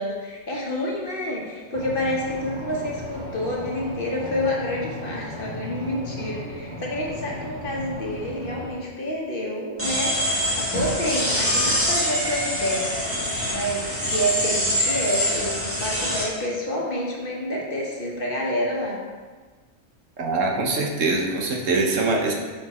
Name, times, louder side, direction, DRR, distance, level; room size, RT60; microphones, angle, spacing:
voice 1, 0.0-12.9 13.4-19.0, left 1 dB, 45° left, -3 dB, 1.2 m, -28 dB
sound 1, 1.7-8.7, equal, 25° right, 0.8 m, -36 dB
sound 2, 9.8-16.2, equal, 10° right, 1.2 m, -24 dB
voice 2, 20.2-22.3, right 3 dB, 75° right, 1 dB, 1.3 m, -23 dB
5.8 x 5.2 x 4.2 m, 1.4 s
omnidirectional pair, 1.3 m